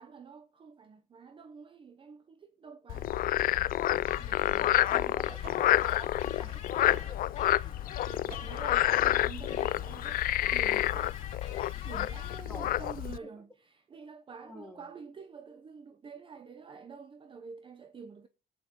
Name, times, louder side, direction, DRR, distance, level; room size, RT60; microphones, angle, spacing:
voice 1, 0.0-3.2 3.6-5.4 6.2-6.4 8.1-10.2 10.5-11.2 11.8-18.3, right 5 dB, 30° right, 0.7 m, -48 dB
Frog, 2.9-13.2, left 13 dB, 60° left, 0.5 m, -29 dB
sound 1, 4.1-12.4, left 8 dB, 40° left, 2.8 m, -47 dB
sound 2, 4.6-10.0, right 3 dB, 65° right, 4.3 m, -55 dB
voice 2, 4.7-7.6 12.5-12.9 13.2-13.3 14.4-14.9, left 1 dB, ahead, 3.2 m, -49 dB
19.5 x 8.6 x 3.0 m
cardioid pair, 110°, 17 cm